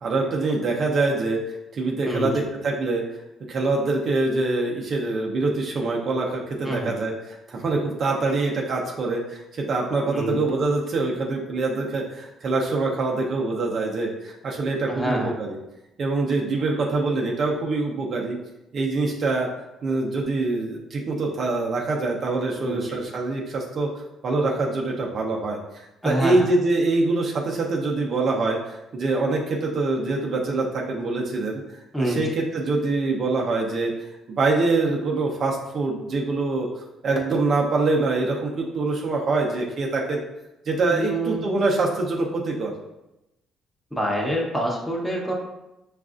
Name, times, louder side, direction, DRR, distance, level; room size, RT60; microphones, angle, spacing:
voice 1, 0.0-1.4 1.7-3.0 3.5-15.6 16.0-18.4 18.7-19.5 19.8-23.9 24.2-31.6 32.0-33.9 34.3-36.7 37.0-40.2 40.7-42.7, right 3 dB, 50° right, -1 dB, 0.7 m, -24 dB
voice 2, 14.9-15.3 22.6-23.0 26.0-26.5 31.9-32.2 40.9-41.4 43.9-45.3, right 1 dB, ahead, -3 dB, 1.0 m, -26 dB
6.2 x 2.4 x 2.5 m, 0.93 s
cardioid pair, 95°, 0 cm